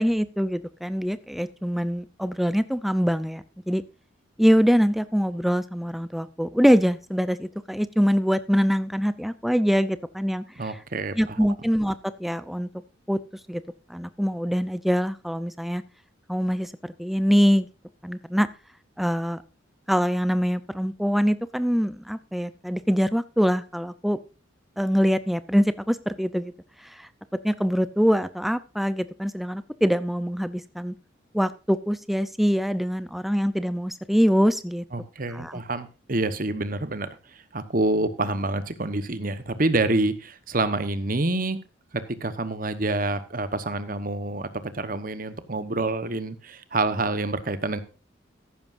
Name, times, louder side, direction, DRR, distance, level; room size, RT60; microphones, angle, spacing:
voice 1, 0.0-3.8 4.4-10.7 11.2-12.7 13.1-13.2 13.5-13.6 13.9-15.8 16.3-17.7 18.0-18.5 19.0-19.4 19.9-24.2 24.8-26.5 26.9-27.1 27.4-30.9 31.3-34.8 35.3-35.6, equal, ahead, 14 dB, 0.5 m, -24 dB
voice 2, 10.6-11.4 34.9-41.6 41.9-47.8, right 2 dB, 45° right, 12 dB, 1.1 m, -27 dB
14.5 x 11.5 x 2.6 m, 0.32 s
head